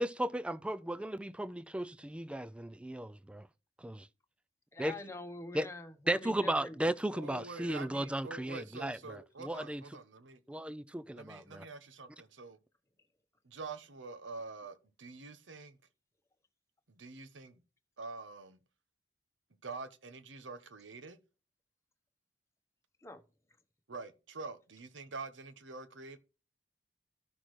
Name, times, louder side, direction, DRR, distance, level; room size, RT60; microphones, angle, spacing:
voice 1, 0.0-3.5 3.8-4.1 4.8-5.0 5.5-5.7 6.1-9.8 10.5-11.6, right 1 dB, 5° right, 0.3 m, -35 dB
voice 2, 4.7-6.8 23.0-23.2, left 2 dB, 15° left, 1.1 m, -45 dB
voice 3, 7.1-10.4 11.1-12.6 13.4-15.8 16.9-17.6 18.0-18.6 19.6-21.2 23.9-26.2, right 4 dB, 85° right, 1.0 m, -46 dB
13.5 x 6.1 x 3.2 m
head